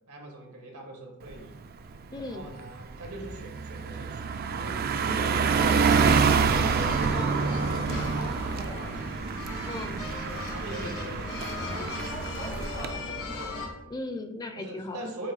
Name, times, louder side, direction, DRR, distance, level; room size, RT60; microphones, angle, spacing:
voice 1, 0.0-1.6 2.3-9.2 10.3-13.4 13.8-13.9 14.5-15.3, right 1 dB, 90° right, 0 dB, 1.9 m, -42 dB
Car passing by, 1.3-1.6 1.9-12.9, right 5 dB, 45° right, 0.4 m, -27 dB
voice 2, 2.1-2.5 7.1-7.5 9.6-10.0 13.8-15.1, left 2 dB, 20° left, 7 dB, 0.5 m, -37 dB
sound 1, 5.4-13.7, left 2 dB, 70° left, 1.6 m, -37 dB
8.3 x 3.1 x 4.8 m, 0.91 s
head